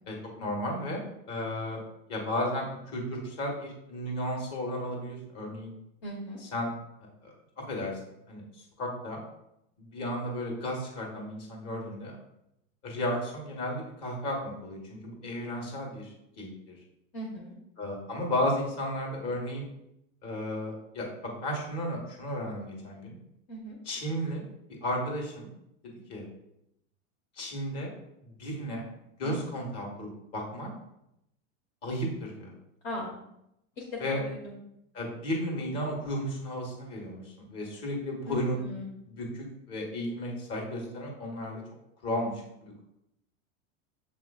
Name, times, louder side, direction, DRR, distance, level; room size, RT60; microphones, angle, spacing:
voice 1, 0.1-1.0 1.3-1.8 2.1-2.6 2.9-5.7 6.5-6.7 7.2-8.0 8.3-8.4 8.8-9.2 9.8-12.2 12.8-16.5 17.8-19.7 20.2-23.1 23.8-24.4 24.8-25.5 26.1-26.3 27.4-27.9 28.4-28.8 29.2-30.7 31.8-32.5 34.0-34.2 34.9-37.2 37.5-38.6 39.2-41.6 42.0-42.3 42.6-42.8, left 1 dB, 40° left, 0 dB, 1.5 m, -33 dB
voice 2, 6.0-6.4 17.1-17.6 23.5-23.8 29.2-29.5 32.8-33.1 33.8-34.5 38.3-38.9, left 1 dB, 55° left, -3 dB, 1.1 m, -39 dB
7.2 x 2.9 x 2.3 m, 0.82 s
hypercardioid pair, 120°, 39 cm